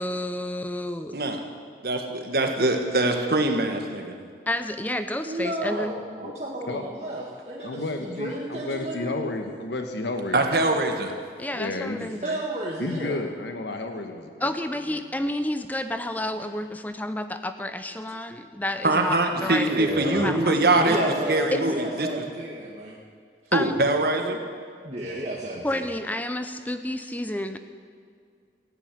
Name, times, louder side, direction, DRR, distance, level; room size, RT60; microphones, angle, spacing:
voice 1, 0.0-1.2 4.5-5.9 11.4-12.4 14.4-19.7 20.2-20.8 21.5-21.6 23.5-23.8 25.6-27.6, left 1 dB, 10° left, 9 dB, 0.6 m, -30 dB
voice 2, 1.8-4.2 10.3-11.1 18.8-21.7 22.0-22.1 23.5-24.4, right 2 dB, 55° right, 4 dB, 1.6 m, -23 dB
voice 3, 5.2-9.1 12.2-13.2 19.4-22.9 24.8-25.9, right 1 dB, 40° right, -4 dB, 1.6 m, -31 dB
voice 4, 7.6-10.7 11.5-12.1 12.8-14.3, left 2 dB, 80° left, 5 dB, 1.3 m, -32 dB
15.0 x 9.8 x 9.4 m, 2.2 s
head